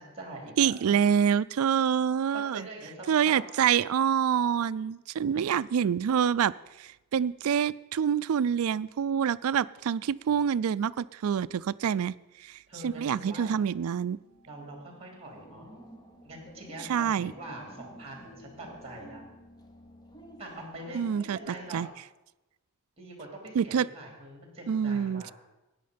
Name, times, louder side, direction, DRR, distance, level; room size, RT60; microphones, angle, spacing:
voice 1, 0.0-1.0 2.3-3.5 5.3-5.4 12.7-13.6 14.5-15.7 16.2-19.2 20.4-21.9 23.0-25.3, right 2 dB, 25° right, 2 dB, 3.0 m, -44 dB
voice 2, 0.6-2.7 3.1-6.5 6.8-14.2 16.9-17.3 20.9-21.4 21.7-21.9 23.5-23.9 24.7-25.3, right 8 dB, 70° right, 18 dB, 0.3 m, -26 dB
sound 1, 13.0-20.4, left 1 dB, 80° left, 2.7 m, -58 dB
sound 2, 15.3-21.8, equal, 20° left, 1.1 m, -51 dB
13.5 x 9.5 x 5.1 m, 1.0 s
head